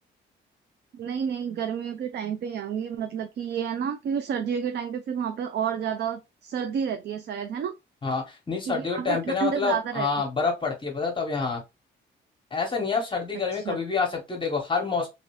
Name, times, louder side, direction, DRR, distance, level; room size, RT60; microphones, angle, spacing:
voice 1, 0.9-7.7 8.7-10.1 13.5-13.8, right 7 dB, 55° right, 0.5 m, -30 dB
voice 2, 8.0-11.6 12.5-15.1, left 5 dB, 25° left, 1.1 m, -27 dB
3.0 x 2.7 x 3.0 m
cardioid pair, 90°, 20 cm